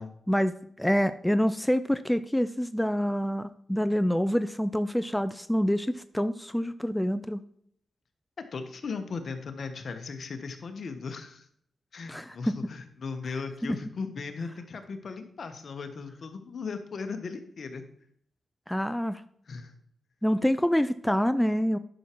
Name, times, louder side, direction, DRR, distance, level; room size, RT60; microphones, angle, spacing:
voice 1, 0.3-7.4 12.1-12.5 13.7-13.8 18.7-19.2 20.2-21.8, equal, 5° left, 12 dB, 0.4 m, -26 dB
voice 2, 8.5-11.5 11.9-17.8 19.5-19.7, left 4 dB, 60° left, 7 dB, 1.3 m, -37 dB
11.0 x 6.2 x 4.6 m, 0.67 s
cardioid pair, 75°, 0 cm